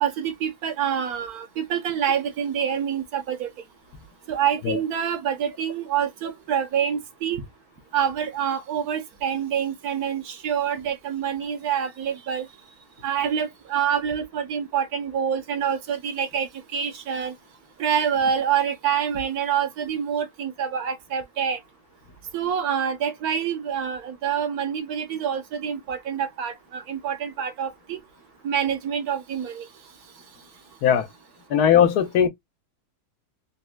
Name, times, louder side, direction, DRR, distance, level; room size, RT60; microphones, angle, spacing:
voice 1, 0.0-3.5 4.3-7.4 7.9-12.5 13.0-17.3 17.8-21.6 22.3-28.0 28.4-29.6, right 8 dB, 75° right, 1.3 m, -26 dB
voice 2, 31.5-32.3, left 9 dB, 80° left, 1.2 m, -18 dB
4.1 x 2.1 x 2.3 m
omnidirectional pair, 1.6 m